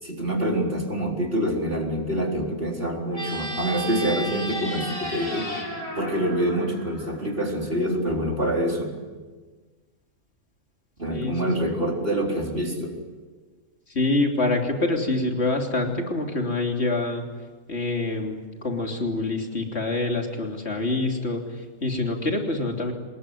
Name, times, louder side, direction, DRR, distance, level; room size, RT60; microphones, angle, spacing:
voice 1, 0.0-5.5 6.0-9.0 11.0-13.0, right 1 dB, 40° right, 0 dB, 4.4 m, -26 dB
sound 1, 3.1-7.6, equal, 25° left, 4.6 m, -33 dB
voice 2, 11.1-11.4 13.9-17.2 17.7-22.9, left 2 dB, 50° left, 2 dB, 3.6 m, -26 dB
26.5 x 20.5 x 9.3 m, 1.4 s
omnidirectional pair, 1.5 m